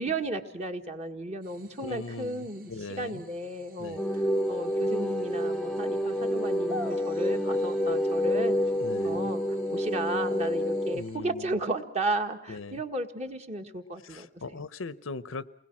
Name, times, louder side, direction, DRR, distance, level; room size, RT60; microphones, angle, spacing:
voice 1, 0.0-2.7 3.0-4.0 4.5-8.6 9.0-9.4 9.7-14.3, right 2 dB, 35° right, 5 dB, 1.7 m, -34 dB
sound 1, 1.4-11.2, left 1 dB, 50° right, 3.6 m, -49 dB
voice 2, 1.8-3.2 3.8-4.0 8.8-9.3 10.9-11.6 12.5-12.8 14.0-15.5, left 3 dB, 80° left, 15 dB, 0.8 m, -40 dB
sound 2, 4.0-11.0, left 1 dB, 5° left, 0.8 m, -28 dB
29.0 x 21.0 x 6.1 m, 0.76 s
head